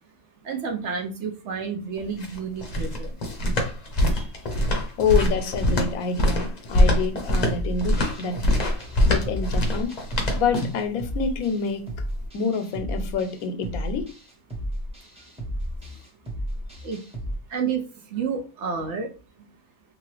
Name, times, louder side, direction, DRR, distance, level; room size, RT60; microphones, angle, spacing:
voice 1, 0.4-3.2 4.1-4.3 16.8-17.0 17.5-17.8 18.1-19.1, right 6 dB, 65° right, 0.8 m, -30 dB
sound 1, 2.0-10.9, left 1 dB, 40° left, 0.6 m, -23 dB
voice 2, 5.0-8.4 9.0-11.8 12.3-14.1, left 5 dB, 85° left, 1.0 m, -27 dB
sound 2, 7.5-17.3, equal, 5° right, 0.7 m, -33 dB
2.9 x 2.4 x 3.1 m
omnidirectional pair, 1.5 m